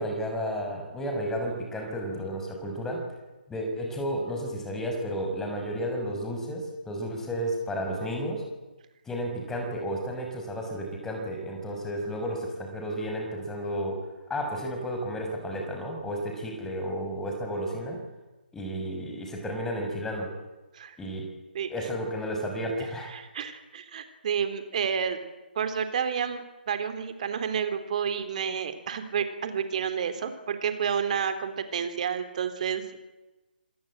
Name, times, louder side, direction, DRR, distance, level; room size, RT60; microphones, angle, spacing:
voice 1, 0.0-3.0 3.5-8.4 9.1-14.0 14.3-18.0 18.5-20.3 21.0-21.3 21.7-23.1, equal, 5° left, 2 dB, 6.3 m, -32 dB
voice 2, 23.1-25.2 25.6-26.4 26.7-32.8, right 7 dB, 45° right, 9 dB, 3.7 m, -30 dB
27.0 x 19.0 x 9.1 m, 1.1 s
figure-of-eight pair, 145°, 6 cm